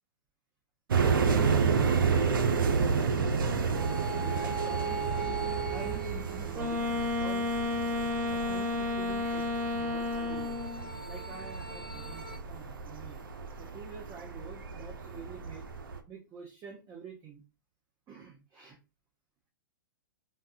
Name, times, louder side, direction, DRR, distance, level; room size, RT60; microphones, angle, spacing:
sound 1, 0.9-16.0, right 5 dB, 85° right, 0.6 m, -31 dB
voice 1, 1.5-2.1 2.9-3.7 4.1-5.2 5.7-6.8 7.2-7.5 8.3-10.6 11.1-13.2 13.6-15.6 16.1-17.4 18.1-18.8, right 5 dB, 25° right, 0 dB, 0.7 m, -47 dB
sound 2, 3.7-6.9 9.8-12.4, right 5 dB, ahead, 1.0 m, -38 dB
Wind instrument woodwind instrument, 6.5-10.9, left 3 dB, 60° right, 0.9 m, -32 dB
3.2 x 2.3 x 2.8 m, 0.28 s
hypercardioid pair, 130°, 11 cm